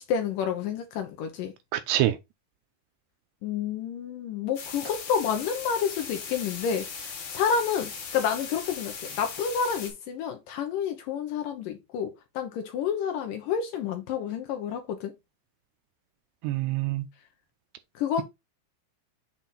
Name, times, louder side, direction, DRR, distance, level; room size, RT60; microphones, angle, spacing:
voice 1, 0.0-1.5 3.4-15.1 18.0-18.2, left 7 dB, 85° left, 1.9 m, -29 dB
voice 2, 1.7-2.2 16.4-17.1, right 14 dB, 80° right, 2.6 m, -25 dB
sound 1, 4.6-9.9, left 6 dB, 50° left, 2.9 m, -38 dB
8.0 x 3.4 x 4.2 m
omnidirectional pair, 5.1 m